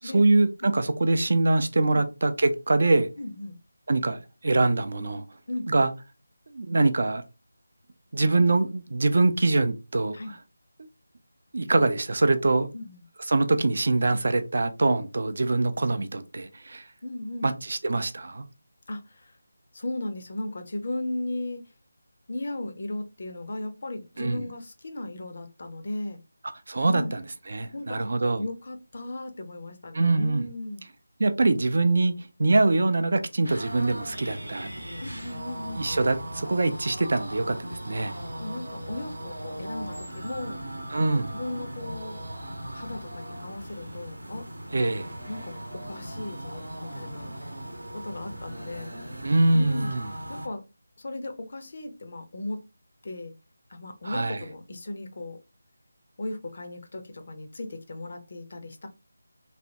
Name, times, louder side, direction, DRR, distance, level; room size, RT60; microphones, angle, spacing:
voice 1, 0.0-3.1 3.9-5.2 5.7-5.9 6.5-7.2 8.1-10.2 11.5-12.7 13.3-16.8 17.4-18.5 24.2-24.5 26.7-28.4 29.9-30.4 31.2-34.7 35.7-38.1 40.9-41.3 44.7-45.1 49.2-50.1 54.0-54.4, right 2 dB, 50° right, 0.4 m, -24 dB
voice 2, 3.2-3.6 5.5-5.8 10.1-10.3 12.7-13.0 17.0-17.5 18.9-19.4 19.7-21.6 22.3-26.2 26.9-27.2 27.7-28.1 28.4-30.9 35.0-35.9 38.4-40.6 41.1-42.2 42.7-44.5 45.3-47.4 47.9-48.9 49.5-50.0 50.3-50.6 51.0-52.6 53.0-53.3 53.7-55.4 56.2-58.9, left 2 dB, 45° left, 0.6 m, -36 dB
sound 1, 33.4-50.5, right 1 dB, 75° right, 0.7 m, -38 dB
3.2 x 2.1 x 2.7 m
figure-of-eight pair, 160°, 0 cm